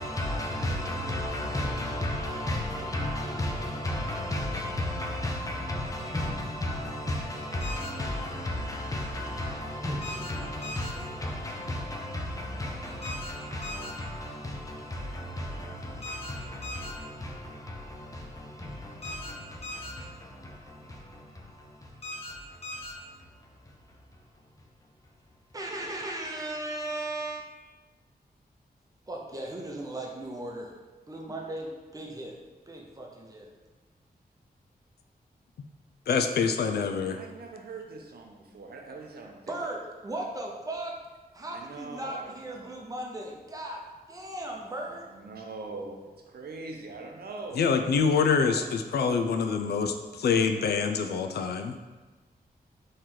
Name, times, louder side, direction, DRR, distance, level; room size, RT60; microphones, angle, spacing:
voice 1, 0.0-24.5 24.8-24.9 25.3-25.4, left 1 dB, 20° left, 0.6 m, -34 dB
sound 1, 7.6-7.9 10.0-10.3 10.6-10.9 13.0-13.3 13.6-13.9 16.0-16.3 16.6-16.9 19.0-19.3 19.6-19.9 22.0-22.3 22.6-22.9, left 1 dB, 40° left, 1.0 m, -38 dB
voice 2, 25.5-27.6 29.1-30.7 31.1-32.4 32.7-33.5 39.5-40.9 41.3-43.8 44.1-45.1, right 1 dB, 20° right, 0.7 m, -37 dB
voice 3, 36.1-37.2 47.6-51.7, left 5 dB, 85° left, 0.4 m, -25 dB
voice 4, 37.1-39.7 41.5-42.7 44.5-47.6 48.3-48.7, right 3 dB, 75° right, 0.7 m, -42 dB
4.4 x 3.2 x 3.8 m
wide cardioid pair, 165°, 16 cm